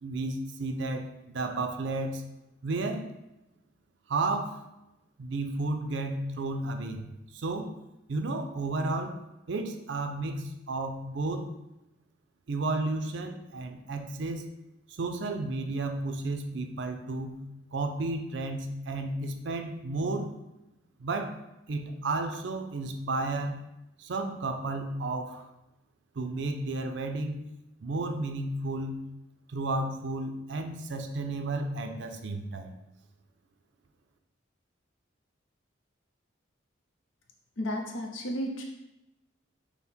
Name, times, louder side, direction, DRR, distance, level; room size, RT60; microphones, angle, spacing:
voice 1, 0.0-2.2 2.6-3.1 4.1-4.6 5.2-7.7 8.1-9.2 9.5-11.5 12.5-14.5 14.9-17.4 17.7-20.3 21.0-21.4 21.7-23.6 24.0-25.5 26.2-27.5 27.8-29.1 29.5-32.7, right 2 dB, 65° right, 6 dB, 0.4 m, -32 dB
voice 2, 37.6-38.6, equal, 80° left, 1 dB, 0.7 m, -33 dB
5.6 x 2.1 x 4.3 m, 0.94 s
head